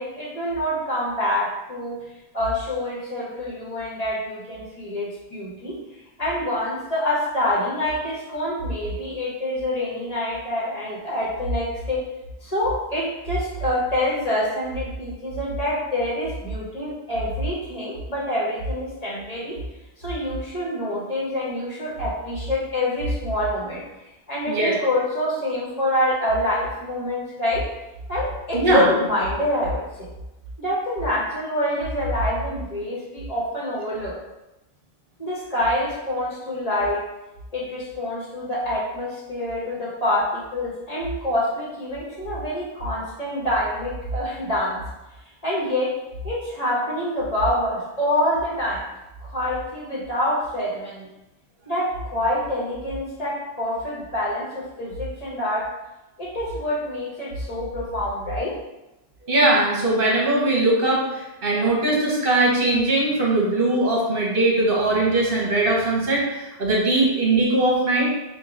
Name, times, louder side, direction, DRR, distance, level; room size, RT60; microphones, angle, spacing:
voice 1, 0.0-2.0 2.3-5.8 6.2-12.0 12.4-19.6 20.0-23.8 24.3-27.7 28.1-29.8 30.6-34.2 35.2-37.0 37.5-44.8 45.4-45.9 46.2-48.8 49.2-51.1 51.7-55.7 56.2-58.5, left 1 dB, 40° left, -7 dB, 1.3 m, -26 dB
voice 2, 28.5-28.9 59.2-68.1, right 2 dB, 60° right, -4 dB, 1.2 m, -20 dB
4.6 x 2.6 x 3.7 m, 0.98 s
omnidirectional pair, 1.1 m